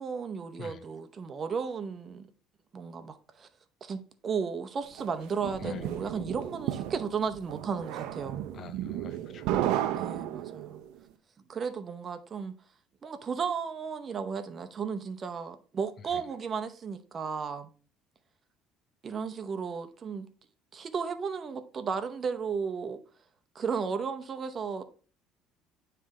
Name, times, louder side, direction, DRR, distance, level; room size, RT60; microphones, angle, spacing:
voice 1, 0.0-2.3 2.7-3.5 3.8-8.5 9.9-10.8 11.5-12.5 13.0-17.7 19.0-20.3 20.7-23.0 23.5-24.8, right 6 dB, 35° right, 0.8 m, -34 dB
sound 1, 5.0-10.8, right 12 dB, 80° right, 0.6 m, -33 dB
voice 2, 8.5-9.7 16.1-16.2, left 7 dB, 45° left, 0.6 m, -44 dB
9.3 x 3.3 x 3.7 m
cardioid pair, 130°, 0 cm